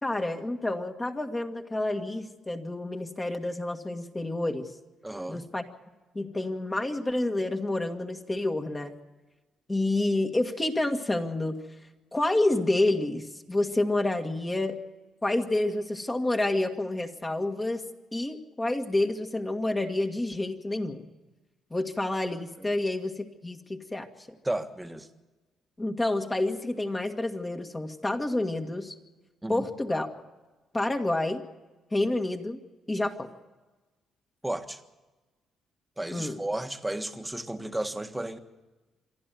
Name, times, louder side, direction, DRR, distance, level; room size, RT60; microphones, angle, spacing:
voice 1, 0.0-4.7 5.3-5.6 6.1-8.9 9.7-11.6 12.1-14.8 15.2-17.8 18.1-21.1 21.7-24.1 25.8-28.9 29.5-30.1 30.7-31.4 31.9-32.6 32.9-33.3 36.1-36.4, left 2 dB, 20° left, 1.8 m, -29 dB
voice 2, 5.0-5.4 22.6-22.7 24.4-25.1 29.4-29.7 34.4-34.8 36.0-38.4, right 1 dB, 10° right, 1.6 m, -33 dB
26.5 x 11.0 x 9.2 m
cardioid pair, 90°, 0 cm